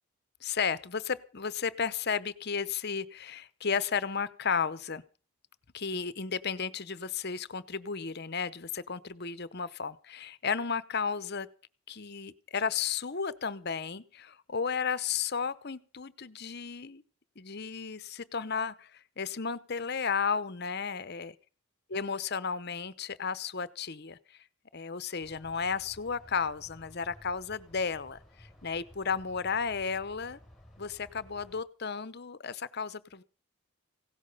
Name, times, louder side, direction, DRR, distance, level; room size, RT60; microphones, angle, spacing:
voice 1, 0.4-5.0 5.7-11.5 11.9-17.0 17.4-21.3 21.9-24.2 24.7-30.4 30.8-33.2, left 6 dB, 45° left, 16 dB, 0.8 m, -33 dB
sound 1, 25.2-31.6, equal, ahead, 5.2 m, -55 dB
17.0 x 11.5 x 5.5 m, 0.38 s
head